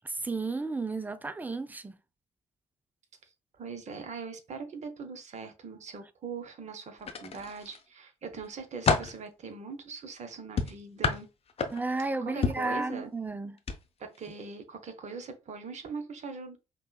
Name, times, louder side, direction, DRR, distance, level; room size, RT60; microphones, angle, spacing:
voice 1, 0.1-2.0 11.7-13.6, right 3 dB, 10° right, 0.4 m, -33 dB
voice 2, 3.6-11.3 12.2-13.1 14.0-16.6, right 5 dB, 40° right, 0.8 m, -41 dB
sound 1, 7.0-7.8 8.3-9.2 10.6-12.0 12.4-12.7 13.6-13.8 14.1-14.3, left 5 dB, 35° left, 0.6 m, -29 dB
5.2 x 2.1 x 2.3 m
figure-of-eight pair, 45°, 18 cm